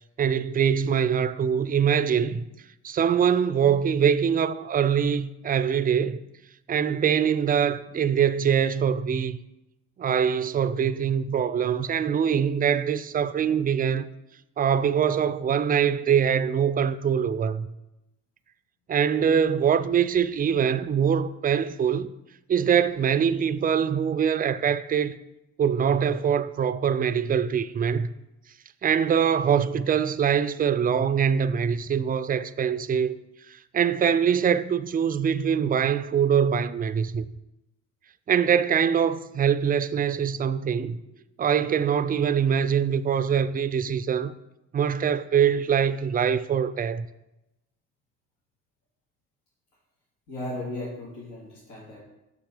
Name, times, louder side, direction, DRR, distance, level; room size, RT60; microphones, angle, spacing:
voice 1, 0.2-2.4 2.8-6.2 6.7-9.4 10.0-14.1 14.6-17.7 18.9-22.1 22.5-25.2 25.6-28.1 28.8-33.2 33.7-37.3 38.3-41.0 41.4-44.3 44.7-47.1, right 7 dB, 30° right, 0.4 m, -23 dB
voice 2, 50.3-52.0, left 1 dB, 80° left, 2.4 m, -36 dB
6.1 x 5.9 x 5.0 m
cardioid pair, 90°, 30 cm